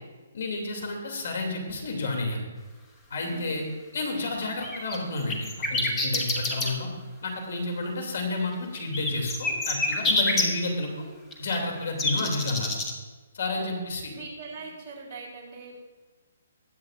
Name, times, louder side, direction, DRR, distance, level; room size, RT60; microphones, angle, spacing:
voice 1, 0.3-2.4 3.1-3.6 3.9-6.9 7.2-10.9 11.4-12.7 13.3-14.1, left 2 dB, 60° left, 2 dB, 2.5 m, -30 dB
voice 2, 3.2-3.7 12.0-12.5 13.5-15.7, right 4 dB, 25° right, -6 dB, 3.7 m, -43 dB
sound 1, 4.2-6.7 8.7-10.4 11.3-12.9, left 2 dB, 10° left, 1.0 m, -27 dB
21.0 x 7.5 x 2.5 m, 1.3 s
hypercardioid pair, 170°, 0 cm